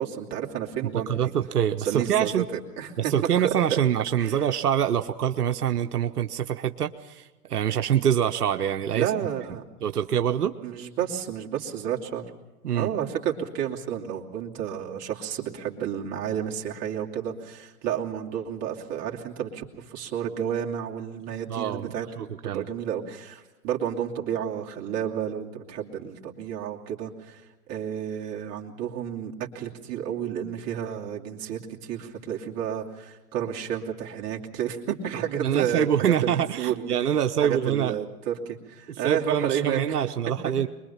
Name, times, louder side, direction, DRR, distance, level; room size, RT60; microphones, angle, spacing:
voice 1, 0.0-1.3 1.8-3.1 3.4-3.8 4.2-4.5 8.9-9.6 10.6-12.2 12.7-22.1 22.4-36.9 37.4-40.0 40.4-40.7, right 9 dB, 35° right, -1 dB, 2.8 m, -31 dB
voice 2, 0.8-2.4 3.0-9.1 9.8-10.5 12.6-12.9 21.5-22.7 35.4-38.0 39.0-40.7, right 9 dB, 85° right, 7 dB, 1.0 m, -25 dB
24.0 x 22.0 x 5.8 m, 1.1 s
hypercardioid pair, 120°, 45 cm